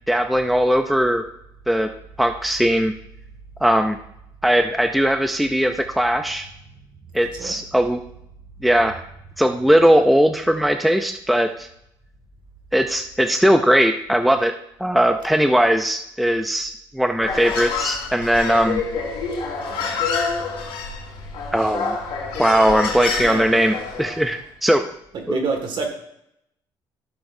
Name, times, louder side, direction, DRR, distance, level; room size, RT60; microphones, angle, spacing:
voice 1, 0.1-1.2 1.7-1.9 2.2-2.9 3.6-4.0 4.4-6.5 7.1-8.0 8.6-9.0 9.4-11.7 12.7-14.5 14.8-18.8 21.5-22.0 22.4-24.8 25.3-25.4, equal, ahead, 7 dB, 0.5 m, -19 dB
Human voice, 17.2-24.3, left 4 dB, 75° left, 2.9 m, -27 dB
voice 2, 25.1-25.9, right 4 dB, 60° right, 4 dB, 2.0 m, -27 dB
13.5 x 6.9 x 2.7 m, 0.77 s
cardioid pair, 110°, 9 cm